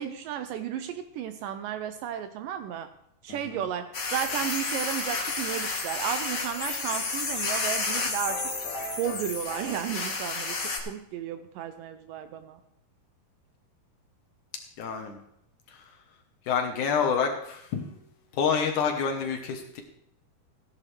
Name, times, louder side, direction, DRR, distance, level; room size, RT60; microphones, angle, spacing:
voice 1, 0.0-2.9 3.2-8.5 9.0-12.6, right 10 dB, 80° right, 9 dB, 2.1 m, -33 dB
voice 2, 3.3-3.6 14.8-15.2 15.7-15.8 16.5-17.9 18.3-19.8, left 6 dB, 65° left, 4 dB, 2.2 m, -28 dB
sound 1, 3.9-10.8, left 3 dB, 90° left, 0.7 m, -31 dB
15.5 x 10.5 x 3.3 m, 0.74 s
omnidirectional pair, 4.3 m